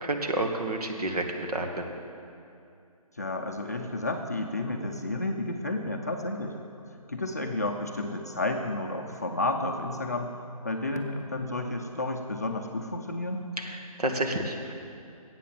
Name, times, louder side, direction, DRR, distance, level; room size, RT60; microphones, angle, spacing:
voice 1, 0.0-1.9 13.6-14.7, right 2 dB, 90° right, 3 dB, 1.6 m, -30 dB
voice 2, 3.1-6.6 6.9-10.3 10.6-13.5, left 2 dB, 25° left, 2 dB, 0.5 m, -31 dB
11.5 x 8.4 x 7.0 m, 2.5 s
hypercardioid pair, 175°, 19 cm